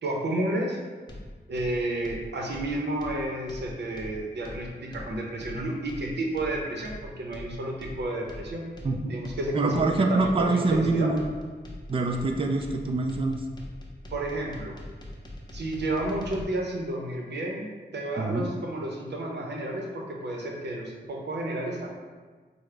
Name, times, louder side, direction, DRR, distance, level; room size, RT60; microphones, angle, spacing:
voice 1, 0.0-0.8 1.5-8.6 9.1-11.1 14.1-14.8 15.5-17.7 17.9-21.9, right 1 dB, 70° right, 0 dB, 0.7 m, -31 dB
sound 1, 1.1-16.4, left 1 dB, 25° left, 0.7 m, -42 dB
voice 2, 8.8-9.1 9.5-11.2 11.9-13.4 18.2-18.5, right 3 dB, 30° right, 3 dB, 0.4 m, -25 dB
4.7 x 2.1 x 3.3 m, 1.4 s
wide cardioid pair, 75°, 18 cm